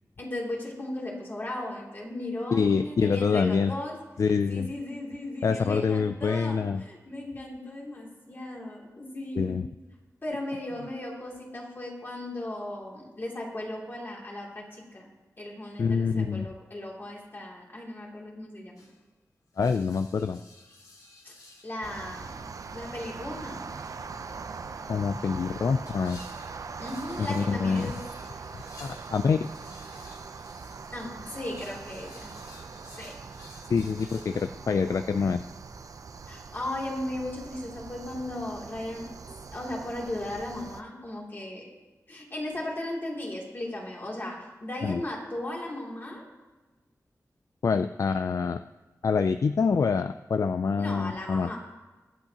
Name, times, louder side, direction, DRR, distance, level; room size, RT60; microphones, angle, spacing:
voice 1, 0.2-4.0 4.5-9.6 10.2-15.1 15.4-18.8 21.2-21.3 21.6-22.4 22.7-23.6 26.8-28.0 30.9-32.3 33.0-33.1 36.3-39.1 39.5-41.7 42.1-46.2 50.8-51.6, left 1 dB, 35° left, -3 dB, 2.8 m, -36 dB
voice 2, 2.5-3.7 4.2-4.7 5.4-6.8 9.4-9.7 15.8-16.5 19.6-20.4 24.9-26.2 27.2-27.9 28.8-29.5 33.7-35.4 44.8-45.0 47.6-48.6 49.0-51.5, left 5 dB, 60° left, 10 dB, 0.3 m, -26 dB
sound 1, 18.8-19.1 19.5-21.8 22.7-34.5, left 2 dB, 75° left, 2.3 m, -53 dB
sound 2, 21.8-40.8, right 5 dB, 65° right, 0.5 m, -42 dB
24.0 x 8.1 x 2.9 m, 1.2 s
wide cardioid pair, 120°, 6 cm